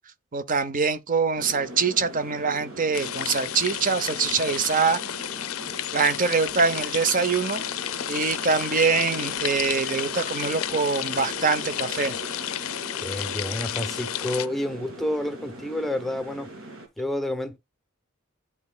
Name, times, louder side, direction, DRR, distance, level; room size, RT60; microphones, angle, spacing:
voice 1, 0.3-5.0 5.9-7.6 8.1-12.1, right 5 dB, 40° right, 0.7 m, -24 dB
sound 1, 1.4-16.9, right 1 dB, 75° right, 2.1 m, -41 dB
sound 2, 2.9-14.5, left 11 dB, 80° left, 0.5 m, -32 dB
voice 2, 13.0-16.5 17.0-17.6, left 1 dB, ahead, 0.7 m, -29 dB
11.0 x 4.1 x 2.2 m
head